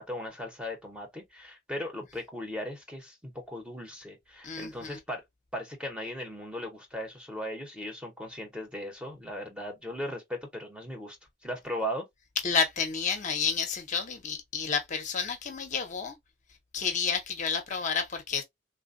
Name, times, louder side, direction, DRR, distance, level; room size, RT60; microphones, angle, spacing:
voice 1, 0.0-5.2 5.5-11.2 11.4-12.1, equal, 5° right, 0.7 m, -37 dB
voice 2, 4.4-5.0 12.4-16.1 16.7-18.4, left 6 dB, 40° left, 0.6 m, -30 dB
3.2 x 2.1 x 2.4 m
head